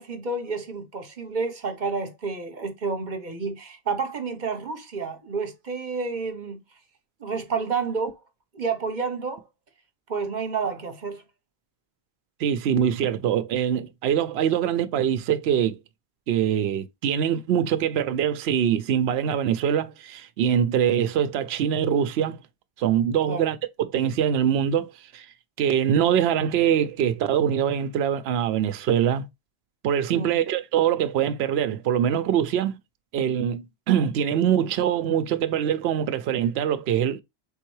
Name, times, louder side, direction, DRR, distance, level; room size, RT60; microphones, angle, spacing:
voice 1, 0.0-6.6 7.2-8.1 8.5-9.4 10.1-11.2 23.3-23.4 30.1-30.4, right 4 dB, 50° right, 1.0 m, -30 dB
voice 2, 12.4-15.8 16.3-22.4 22.8-25.2 25.6-29.2 29.8-32.8 33.1-37.2, right 9 dB, 75° right, 0.8 m, -23 dB
4.4 x 3.5 x 3.1 m
omnidirectional pair, 1.1 m